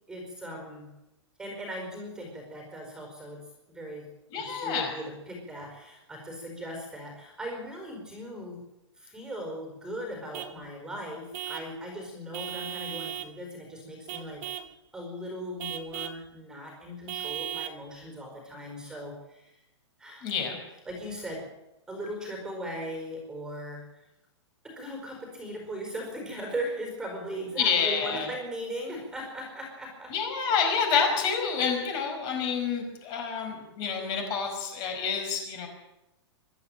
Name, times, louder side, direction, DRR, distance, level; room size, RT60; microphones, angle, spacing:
voice 1, 0.1-0.9 1.4-4.1 4.3-8.6 9.0-14.5 14.9-19.6 20.0-21.5 21.9-23.9 24.6-30.1, equal, 5° right, 2 dB, 4.7 m, -38 dB
voice 2, 4.3-4.9 20.2-20.6 27.6-28.3 30.1-35.7, left 6 dB, 25° left, 3 dB, 5.2 m, -28 dB
Vehicle horn car horn honking / Truck, 10.3-10.6 11.3-11.7 12.3-13.3 14.1-14.7 15.6-16.2 17.1-17.8, right 11 dB, 35° right, 1.7 m, -36 dB
24.0 x 12.5 x 9.1 m, 0.95 s
hypercardioid pair, 165°, 16 cm